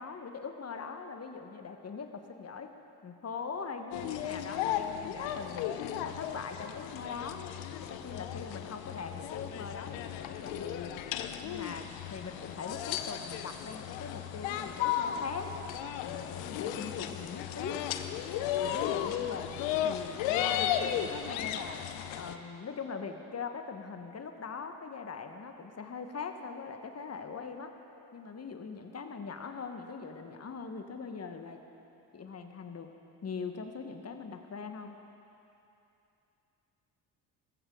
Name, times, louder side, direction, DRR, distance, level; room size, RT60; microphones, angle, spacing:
voice 1, 0.0-2.7 3.0-7.4 7.8-11.0 11.4-15.5 16.0-17.9 18.6-21.9 22.2-27.7 28.1-31.6 32.1-32.9 33.2-35.0, left 5 dB, 30° left, 6 dB, 1.5 m, -41 dB
sound 1, 3.9-22.3, left 10 dB, 65° left, 0.9 m, -35 dB
20.0 x 15.0 x 3.9 m, 2.9 s
hypercardioid pair, 55°, 48 cm